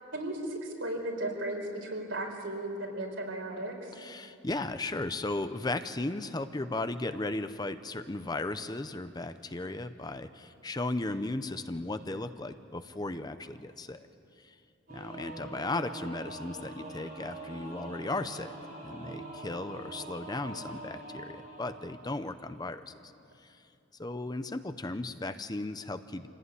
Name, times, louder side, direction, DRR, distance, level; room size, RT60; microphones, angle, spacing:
voice 1, 0.1-3.9, right 1 dB, 85° right, 0 dB, 4.9 m, -35 dB
voice 2, 3.9-14.1 14.4-14.5 14.9-18.5 18.8-23.1 23.4-23.6 24.0-26.3, left 2 dB, 20° left, 10 dB, 0.7 m, -36 dB
Singing / Musical instrument, 14.9-22.6, right 2 dB, 50° right, 6.8 m, -44 dB
26.0 x 16.5 x 9.8 m, 2.7 s
head